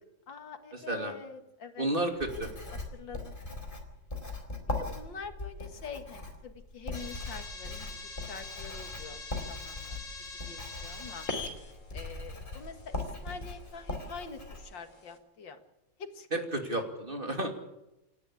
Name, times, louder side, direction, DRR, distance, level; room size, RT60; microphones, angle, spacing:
voice 1, 0.3-1.9 2.9-3.4 4.8-9.2 9.5-10.0 10.5-11.3 11.9-15.6 16.0-16.4, left 5 dB, 90° left, 7 dB, 2.6 m, -45 dB
voice 2, 1.8-2.5 16.3-17.5, right 1 dB, 30° right, 4 dB, 2.8 m, -31 dB
Writing, 2.2-14.6, left 2 dB, 25° left, 4.3 m, -40 dB
sound 1, 6.9-15.2, left 3 dB, 45° left, 3.4 m, -44 dB
28.0 x 11.5 x 8.6 m, 0.94 s
omnidirectional pair, 2.0 m